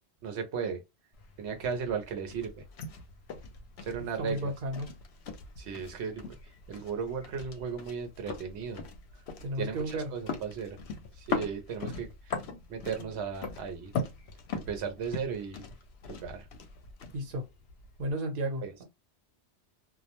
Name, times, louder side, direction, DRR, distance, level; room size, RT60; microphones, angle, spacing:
voice 1, 0.2-0.8 1.4-2.6 3.8-4.5 5.6-6.4 6.7-8.9 9.6-10.8 11.1-12.4 12.7-13.9 14.5-15.7 16.1-16.5 18.6-18.7, right 6 dB, 85° right, 0.9 m, -36 dB
sound 1, 1.1-18.1, left 4 dB, 75° left, 0.8 m, -41 dB
voice 2, 4.0-4.9 9.4-10.1 17.1-17.4 18.0-18.8, right 1 dB, 60° right, 0.9 m, -33 dB
2.3 x 2.1 x 2.8 m
omnidirectional pair, 1.1 m